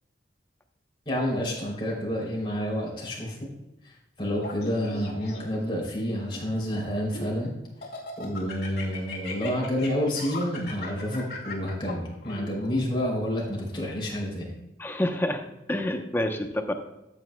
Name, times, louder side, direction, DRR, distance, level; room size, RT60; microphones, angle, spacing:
voice 1, 1.0-3.5 3.8-7.5 8.2-14.5, equal, 30° left, -2 dB, 3.0 m, -29 dB
Laughter, 4.4-5.7 6.3-7.4 7.8-12.8, left 3 dB, 65° left, 2.3 m, -39 dB
voice 2, 14.8-16.7, left 1 dB, 15° left, 5 dB, 0.7 m, -28 dB
13.5 x 8.4 x 2.2 m, 0.94 s
head